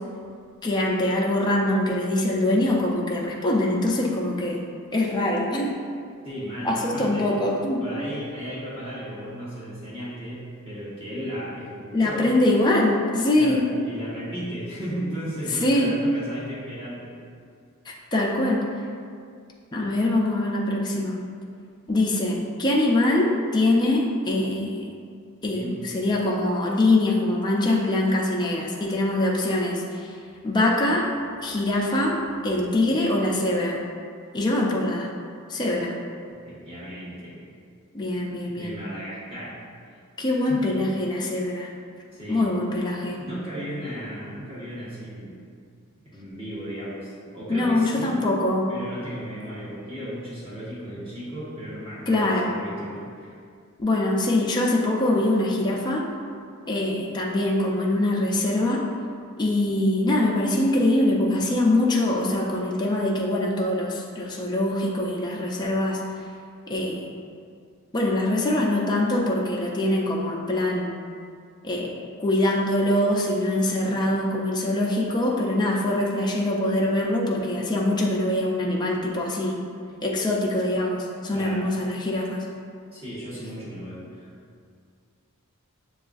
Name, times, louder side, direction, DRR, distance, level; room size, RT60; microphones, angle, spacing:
voice 1, 0.6-4.6 4.9-5.7 6.6-7.8 11.9-13.7 15.6-15.9 17.9-18.7 19.7-21.2 21.9-24.9 25.4-30.1 30.4-31.1 31.4-32.2 32.4-33.8 34.3-35.1 35.5-35.9 37.9-38.7 40.2-41.7 42.3-43.2 47.5-48.7 52.1-52.5 53.8-56.0 56.7-58.8 59.4-66.0 66.7-67.1 67.9-70.9 71.6-79.5 80.0-81.0 81.2-82.4, left 1 dB, 20° left, -3 dB, 0.4 m, -23 dB
voice 2, 6.2-7.4 7.8-12.4 13.3-17.1 19.8-19.9 25.4-25.9 36.3-37.5 38.4-39.5 40.3-40.7 42.1-42.5 43.1-45.4 46.0-48.2 48.7-53.3 81.3-81.7 82.9-84.3, equal, 25° right, -11 dB, 1.2 m, -35 dB
6.8 x 2.3 x 2.4 m, 2.2 s
head